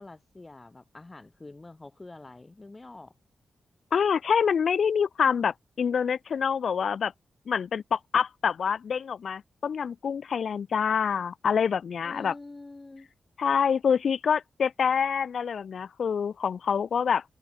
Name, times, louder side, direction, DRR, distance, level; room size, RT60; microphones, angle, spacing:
voice 1, 0.0-3.1 12.0-13.1, left 2 dB, 25° left, 6.7 m, -46 dB
voice 2, 3.9-7.1 7.5-12.3 13.4-17.2, left 7 dB, 70° left, 1.3 m, -26 dB
cardioid pair, 85°, 0 cm